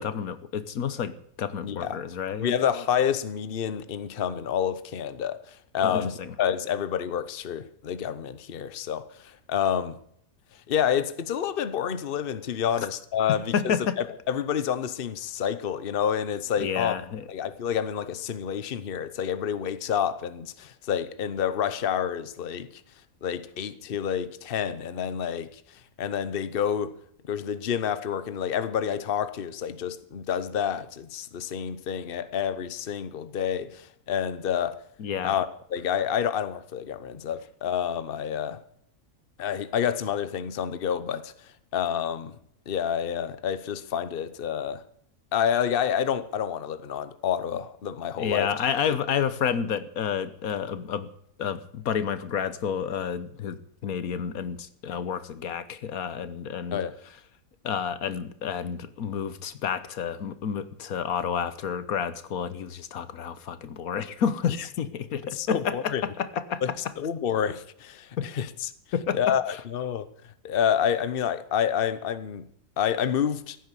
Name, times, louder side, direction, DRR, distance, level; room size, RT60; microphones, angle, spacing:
voice 1, 0.0-2.6 5.8-6.3 12.8-12.9 13.3-14.0 16.6-17.3 35.0-35.3 48.2-51.1 51.4-56.8 57.6-66.6 68.2-68.3 68.9-69.3, left 7 dB, 85° left, 1.5 m, -30 dB
voice 2, 1.6-2.0 2.4-10.0 10.7-17.0 17.3-22.7 23.2-25.6 26.0-27.0 27.3-34.8 35.2-38.6 39.4-41.3 41.7-42.3 42.7-44.8 45.3-48.7 56.7-56.9 65.3-66.0 66.6-68.7 69.1-70.1 70.4-72.5 72.8-73.6, left 8 dB, 45° left, 1.0 m, -28 dB
15.5 x 9.5 x 8.3 m
omnidirectional pair, 1.5 m